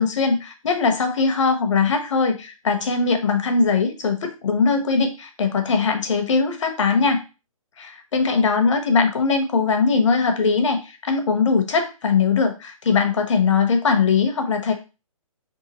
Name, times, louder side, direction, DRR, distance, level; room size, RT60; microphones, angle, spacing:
voice 1, 0.0-7.2 7.8-14.7, left 5 dB, 55° left, 6 dB, 1.0 m, -20 dB
3.7 x 3.7 x 2.9 m, 0.30 s
hypercardioid pair, 160°, 18 cm